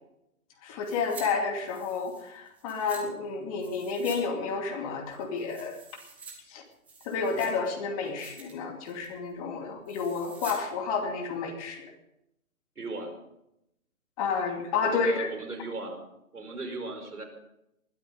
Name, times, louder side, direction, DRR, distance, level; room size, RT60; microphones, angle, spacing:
voice 1, 0.6-5.8 6.5-6.6 7.0-11.9 14.2-15.3, left 5 dB, 25° left, 3 dB, 2.6 m, -30 dB
sound 1, 0.8-1.3 1.6-3.0 3.6-4.2 4.5-4.6 5.1-6.3 6.7-7.7 8.1-8.5 8.9-9.2 9.9-10.6 10.9-11.0, right 4 dB, 5° right, 0.9 m, -47 dB
voice 2, 12.7-13.2 14.8-16.0 16.3-17.2, right 2 dB, 90° right, 5 dB, 5.0 m, -37 dB
20.0 x 12.5 x 5.3 m, 0.82 s
hypercardioid pair, 155°, 44 cm